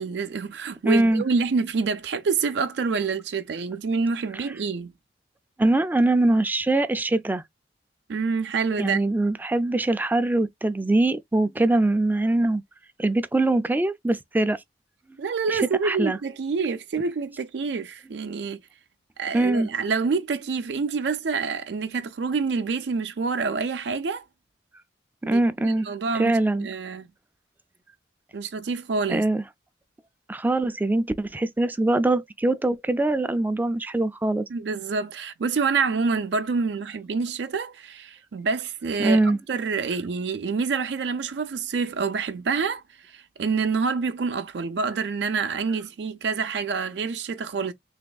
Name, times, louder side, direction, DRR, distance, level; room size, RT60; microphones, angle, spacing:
voice 1, 0.0-4.9 8.1-9.0 15.2-18.6 19.2-24.2 25.2-27.1 28.3-29.2 34.5-47.7, right 5 dB, 75° right, 0.5 m, -27 dB
voice 2, 0.9-1.2 5.6-7.4 8.8-12.6 13.0-14.6 15.5-16.2 19.3-19.7 25.2-25.9 26.1-26.7 29.1-29.4 30.3-34.4 39.0-39.4, right 2 dB, 10° right, 0.3 m, -22 dB
3.5 x 3.0 x 2.2 m
head